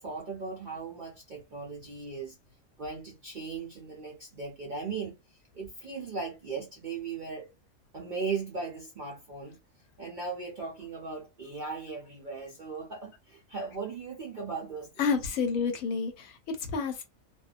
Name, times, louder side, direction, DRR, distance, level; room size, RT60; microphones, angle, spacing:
voice 1, 0.0-2.4 2.8-7.5 7.9-9.6 10.0-15.1, right 4 dB, 55° right, 0.5 m, -38 dB
voice 2, 15.0-17.0, left 5 dB, 75° left, 1.1 m, -29 dB
2.6 x 2.2 x 2.4 m
omnidirectional pair, 1.5 m